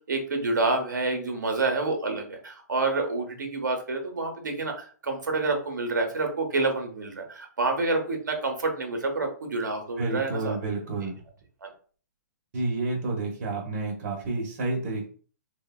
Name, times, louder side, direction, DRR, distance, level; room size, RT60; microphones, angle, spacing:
voice 1, 0.1-10.6 11.6-11.7, right 3 dB, 85° right, 3 dB, 0.7 m, -28 dB
voice 2, 10.0-11.2 12.5-15.1, right 3 dB, 50° right, -1 dB, 0.9 m, -30 dB
3.2 x 2.1 x 2.2 m, 0.42 s
hypercardioid pair, 145°, 10 cm